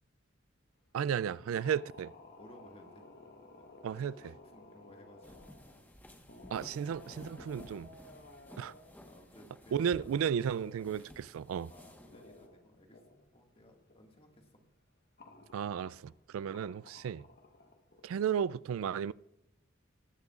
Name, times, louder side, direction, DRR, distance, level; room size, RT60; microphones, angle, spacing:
voice 1, 0.9-2.1 3.8-4.2 6.5-7.9 8.6-8.7 9.7-11.7 15.5-17.3 18.0-19.1, right 8 dB, 85° right, 0.3 m, -34 dB
sound 1, 1.4-6.0 6.3-9.0 10.3-11.1 11.6-11.7 11.9-13.4 13.7-14.0 14.3-14.4 15.2-16.1 16.5-18.1, left 2 dB, 50° left, 1.2 m, -56 dB
voice 2, 2.4-3.0 3.5-3.6 4.0-5.5 9.1-10.1 11.7-14.6, equal, 30° left, 1.9 m, -58 dB
sound 2, 5.2-12.5, equal, 10° left, 1.2 m, -54 dB
20.0 x 10.5 x 2.4 m
head